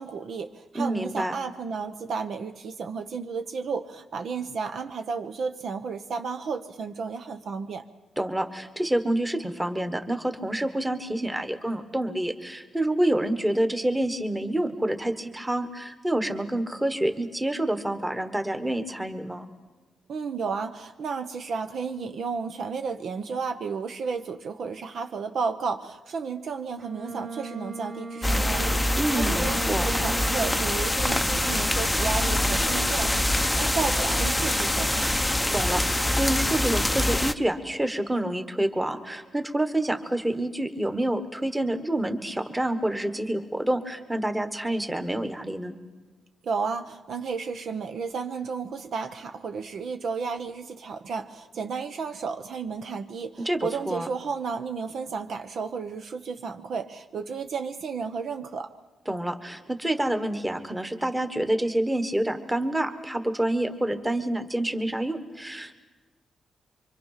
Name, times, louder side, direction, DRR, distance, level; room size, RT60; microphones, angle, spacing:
voice 1, 0.0-7.8 20.1-35.1 46.4-58.7, right 5 dB, 65° right, 7 dB, 0.9 m, -33 dB
voice 2, 0.7-1.3 8.2-19.5 29.0-29.9 35.5-45.7 53.4-54.1 59.1-65.8, right 1 dB, 10° right, 8 dB, 1.4 m, -28 dB
Bowed string instrument, 26.8-30.9, right 3 dB, 40° right, 2.0 m, -37 dB
sound 1, 28.2-37.3, left 1 dB, 5° left, 0.7 m, -24 dB
25.5 x 24.5 x 5.8 m, 1.3 s
wide cardioid pair, 130°, 0 cm